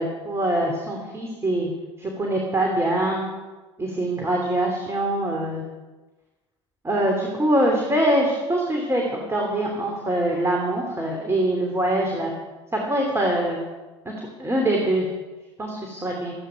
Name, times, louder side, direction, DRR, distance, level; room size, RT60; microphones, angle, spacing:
voice 1, 0.0-1.7 2.0-3.2 3.8-5.6 6.8-12.3 12.7-13.6 14.0-14.1 14.4-15.0 15.6-16.3, right 1 dB, 15° right, 0 dB, 3.2 m, -23 dB
24.0 x 9.4 x 5.3 m, 1.2 s
figure-of-eight pair, 65°, 15 cm